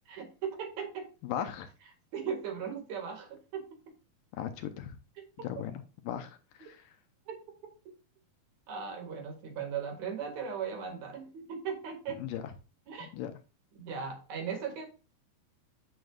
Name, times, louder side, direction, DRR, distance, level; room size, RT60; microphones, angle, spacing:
voice 1, 0.1-1.1 2.1-3.6 5.2-5.5 7.3-7.4 7.6-7.7 8.7-12.2 12.9-13.1 13.8-14.9, right 6 dB, 55° right, 3 dB, 3.1 m, -38 dB
voice 2, 1.2-1.7 4.3-5.0 5.4-6.9 12.2-12.4 13.0-13.3, left 10 dB, 75° left, 8 dB, 2.2 m, -38 dB
8.8 x 7.8 x 2.4 m, 0.33 s
omnidirectional pair, 4.3 m